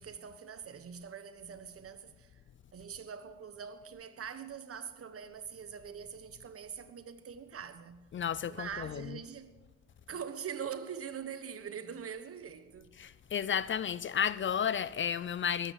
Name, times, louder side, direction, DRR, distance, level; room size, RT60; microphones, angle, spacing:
voice 1, 0.0-2.4 2.7-8.1 8.4-9.5 10.1-12.9, right 7 dB, 50° right, 1.4 m, -43 dB
voice 2, 8.1-8.7 13.0-15.7, left 8 dB, 40° left, 0.5 m, -32 dB
22.0 x 9.1 x 6.5 m
cardioid pair, 90°, 30 cm